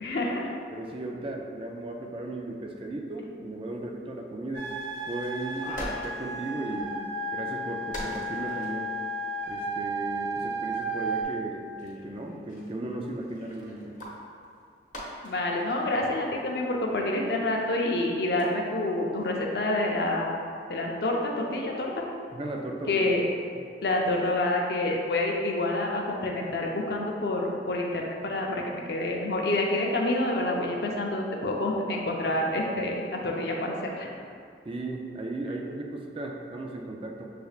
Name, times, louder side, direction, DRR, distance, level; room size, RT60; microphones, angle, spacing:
voice 1, 0.0-0.5 15.2-22.0 22.9-23.2 23.8-34.1, left 2 dB, 60° left, 0 dB, 0.5 m, -28 dB
voice 2, 0.7-4.7 5.1-7.0 7.3-8.9 9.5-13.9 22.3-23.1 34.7-37.3, right 1 dB, 30° right, 1 dB, 0.4 m, -36 dB
sound 1, 4.5-11.2, right 2 dB, 65° right, 0.7 m, -33 dB
sound 2, 5.2-6.5 6.8-6.9 7.1-7.2 7.9-8.8 9.4-10.5 11.0-11.3 11.8-17.8 18.2-18.9 19.2-19.3 19.9-20.1, equal, 45° left, 0.9 m, -43 dB
6.7 x 3.3 x 2.3 m, 2.3 s
head